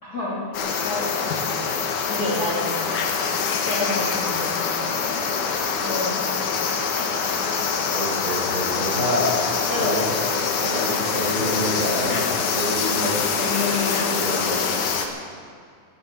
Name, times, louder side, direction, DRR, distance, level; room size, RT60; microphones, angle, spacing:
voice 1, 0.0-1.4 2.1-2.9 3.6-4.9 5.8-6.4 7.0-7.1 9.7-10.0 13.3-14.1, left 2 dB, 30° left, -4 dB, 2.6 m, -29 dB
sound 1, 0.5-15.1, left 5 dB, 85° left, 2.8 m, -24 dB
voice 2, 7.9-9.3 9.8-10.0 10.6-13.4 14.1-14.6, equal, 25° right, -4 dB, 4.3 m, -28 dB
18.5 x 15.5 x 4.5 m, 2.2 s
omnidirectional pair, 3.5 m